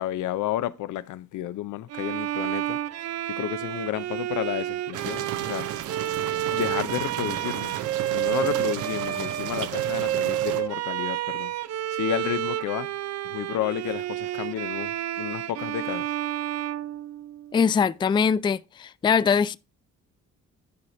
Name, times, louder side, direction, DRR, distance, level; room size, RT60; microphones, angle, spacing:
voice 1, 0.0-2.8 3.3-5.7 6.5-7.8 8.1-11.5 11.9-12.9 13.2-16.1, left 13 dB, 80° left, 0.6 m, -31 dB
Bowed string instrument, 1.9-17.6, right 12 dB, 60° right, 0.5 m, -30 dB
sound 1, 4.9-10.6, right 11 dB, 85° right, 0.8 m, -35 dB
voice 2, 17.5-19.6, left 6 dB, 15° left, 0.3 m, -22 dB
10.5 x 5.0 x 4.2 m
cardioid pair, 90°, 30 cm